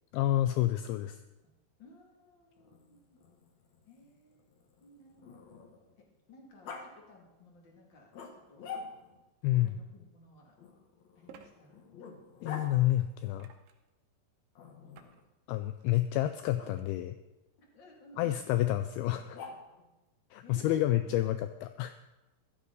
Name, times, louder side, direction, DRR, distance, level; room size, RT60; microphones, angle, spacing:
voice 1, 0.1-1.2 9.4-9.7 12.4-13.5 15.5-17.2 18.2-19.4 20.3-21.9, left 14 dB, 85° left, 10 dB, 2.2 m, -29 dB
voice 2, 1.8-3.2 3.8-4.5 4.8-5.4 6.0-8.7 9.5-10.5 11.1-11.9 17.6-18.4 20.4-20.8 21.0-21.1, left 2 dB, 30° left, -1 dB, 2.6 m, -57 dB
Growling, 2.6-6.0 6.6-6.8 8.1-9.2 10.6-12.7 14.5-15.2 16.5-16.7 19.1-19.9, left 5 dB, 60° left, 2.0 m, -47 dB
sound 1, 9.8-9.9 11.3-11.5 13.4-13.9 14.9-15.2 15.7-16.0 16.8-16.9, right 7 dB, 70° right, 2.4 m, -55 dB
14.5 x 13.0 x 4.0 m, 1.0 s
omnidirectional pair, 4.8 m